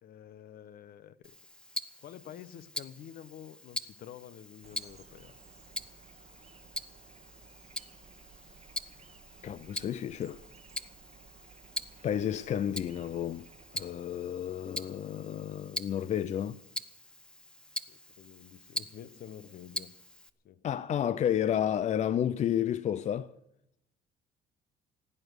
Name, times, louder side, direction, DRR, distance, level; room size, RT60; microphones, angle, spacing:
voice 1, 0.0-1.3 2.0-5.3 17.9-19.9 20.4-20.7 21.2-21.6, left 10 dB, 60° left, 0.9 m, -49 dB
Tick-tock, 1.2-20.3, left 1 dB, 5° left, 0.8 m, -43 dB
sound 1, 4.6-13.9, right 6 dB, 40° right, 1.2 m, -57 dB
voice 2, 9.4-10.4 12.0-13.5 13.7-16.6 20.6-23.3, left 10 dB, 45° left, 0.5 m, -31 dB
16.5 x 9.3 x 8.0 m
cardioid pair, 110°, 17 cm